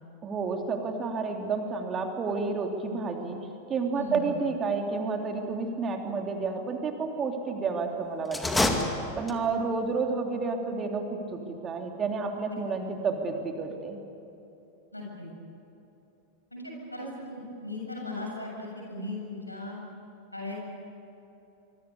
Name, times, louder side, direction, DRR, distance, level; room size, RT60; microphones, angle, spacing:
voice 1, 0.2-3.4 3.7-8.7 9.2-14.0, right 4 dB, 25° right, 3 dB, 3.1 m, -30 dB
voice 2, 3.9-4.3 14.9-15.3 16.5-19.8 20.3-20.7, left 2 dB, 85° left, 0 dB, 7.5 m, -37 dB
sound 1, 8.3-9.6, left 2 dB, 5° left, 2.3 m, -27 dB
25.5 x 24.5 x 8.3 m, 2.9 s
figure-of-eight pair, 90°, 0 cm